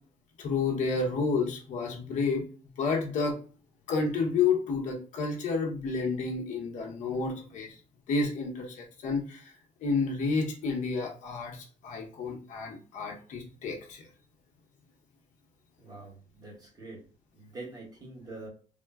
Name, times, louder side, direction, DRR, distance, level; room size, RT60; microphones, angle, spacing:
voice 1, 0.4-2.4 2.8-3.4 3.9-7.7 8.1-9.5 9.8-14.1, left 4 dB, 70° left, 1 dB, 0.9 m, -30 dB
voice 2, 15.8-17.0 17.3-18.5, right 2 dB, 30° right, -3 dB, 1.1 m, -45 dB
3.7 x 2.1 x 2.3 m, 0.39 s
cardioid pair, 150°, 13 cm